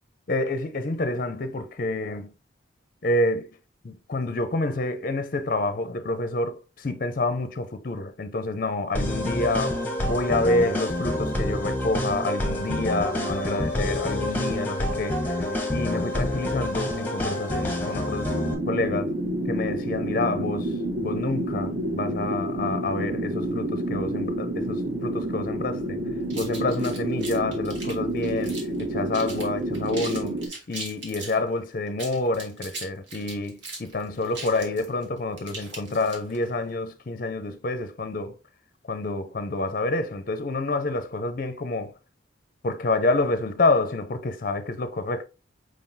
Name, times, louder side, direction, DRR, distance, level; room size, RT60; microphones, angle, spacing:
voice 1, 0.3-2.3 3.0-3.6 3.8-18.3 18.7-19.1 19.5-26.0 26.3-30.4 30.7-38.4 38.9-41.9 42.6-45.2, left 2 dB, 45° left, 0.5 m, -28 dB
sound 1, 8.9-18.5, left 1 dB, 10° left, 0.9 m, -27 dB
sound 2, 18.3-30.5, right 1 dB, 45° right, 1.1 m, -29 dB
sound 3, 26.3-28.8 29.1-29.5 29.7-31.4 31.9-36.4, right 3 dB, 65° right, 1.5 m, -39 dB
5.0 x 3.8 x 2.6 m
head